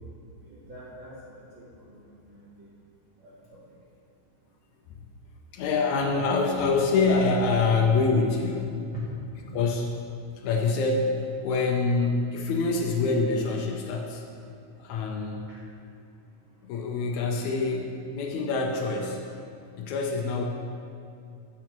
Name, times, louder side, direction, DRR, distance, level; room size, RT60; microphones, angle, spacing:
voice 1, 0.4-2.7 3.2-3.6 8.9-9.1 9.5-9.6 15.5-15.6, right 2 dB, 60° right, -7 dB, 1.3 m, -45 dB
voice 2, 5.5-8.7 9.5-10.0 10.4-14.2 14.8-15.4 16.6-19.2 19.8-20.4, left 4 dB, 75° left, 1 dB, 1.9 m, -25 dB
12.0 x 7.5 x 3.0 m, 2.5 s
omnidirectional pair, 3.7 m